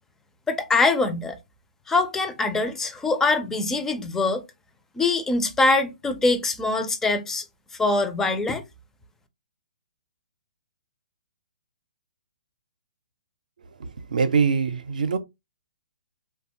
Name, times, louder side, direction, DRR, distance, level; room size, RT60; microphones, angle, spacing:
voice 1, 0.5-1.4 1.9-4.4 5.0-7.4 7.8-8.6, left 3 dB, 10° left, 0.4 m, -23 dB
voice 2, 13.8-15.2, right 5 dB, 75° right, 0.5 m, -23 dB
3.0 x 2.3 x 2.7 m
hypercardioid pair, 135°, 4 cm